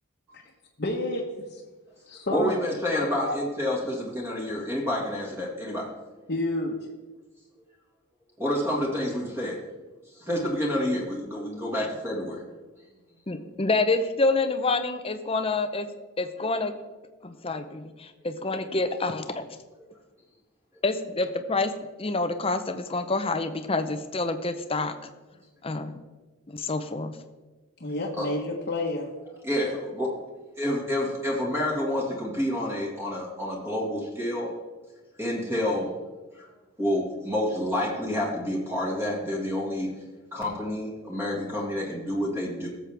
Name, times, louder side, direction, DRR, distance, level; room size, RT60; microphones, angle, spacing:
voice 1, 0.8-1.6 2.1-2.6 2.9-3.4 6.3-6.9 27.8-29.1, left 2 dB, 50° left, -3 dB, 1.2 m, -30 dB
voice 2, 2.3-5.9 8.4-9.6 10.2-12.4 28.1-28.3 29.4-30.1 30.6-34.5 35.2-35.9 36.8-39.9 40.3-42.7, left 1 dB, 10° right, -3 dB, 1.8 m, -28 dB
voice 3, 13.3-15.9 16.2-16.7 17.2-19.4 20.8-21.7 22.0-25.1 25.6-25.9 26.5-27.1, left 3 dB, 25° left, 9 dB, 0.7 m, -27 dB
18.0 x 7.4 x 3.5 m, 1.2 s
head